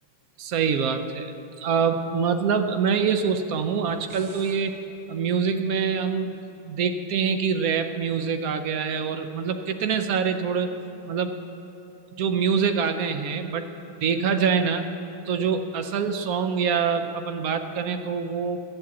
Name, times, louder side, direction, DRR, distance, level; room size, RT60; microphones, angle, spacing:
voice 1, 0.4-1.3 1.6-4.8 5.1-10.7 11.1-11.4 12.2-13.7 14.0-14.9 15.2-18.6, right 6 dB, 75° right, 8 dB, 0.8 m, -25 dB
sound 1, 3.7-4.7, right 4 dB, 55° right, 1.2 m, -47 dB
13.0 x 7.5 x 8.2 m, 3.0 s
omnidirectional pair, 2.3 m